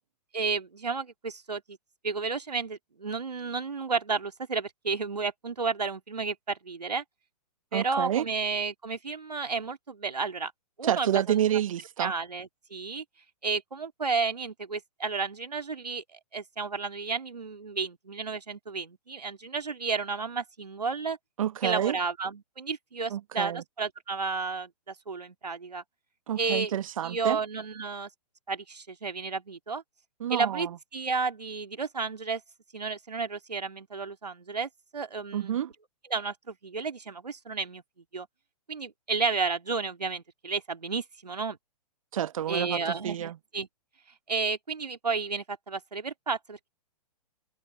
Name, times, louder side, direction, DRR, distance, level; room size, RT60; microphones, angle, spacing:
voice 1, 0.3-1.8 2.0-7.0 7.7-10.5 10.8-11.4 12.0-13.0 13.4-21.2 21.6-25.8 26.4-26.7 27.0-28.1 28.5-29.8 30.3-30.7 30.9-32.4 32.7-35.5 36.1-37.8 38.1-38.3 38.7-41.6 42.5-43.7 44.3-46.7, right 4 dB, 80° right, 2.5 m, -32 dB
voice 2, 7.7-8.3 10.8-12.1 21.4-22.0 23.1-23.6 26.3-27.4 30.2-30.7 35.3-35.7 42.1-43.4, right 10 dB, 55° right, 1.0 m, -29 dB
figure-of-eight pair, 120°, 21 cm